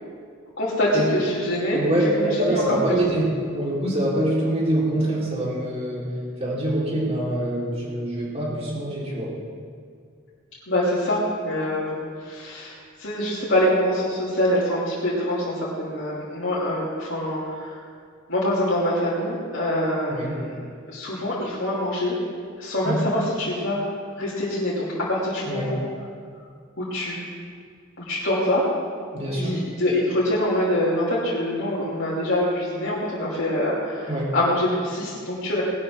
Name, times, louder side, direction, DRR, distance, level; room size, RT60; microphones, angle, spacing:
voice 1, 0.6-1.8 2.2-3.0 10.7-17.8 18.3-20.5 20.9-22.2 22.6-23.8 24.1-25.8 26.8-27.1 28.0-28.6 29.3-35.6, left 1 dB, 65° left, -8 dB, 2.9 m, -25 dB
voice 2, 1.7-3.3 3.5-6.1 6.4-9.3 20.1-20.4 22.8-23.1 25.4-25.8 29.1-29.6 34.1-34.3, right 1 dB, 30° right, -6 dB, 4.1 m, -25 dB
20.0 x 12.0 x 3.7 m, 2.1 s
head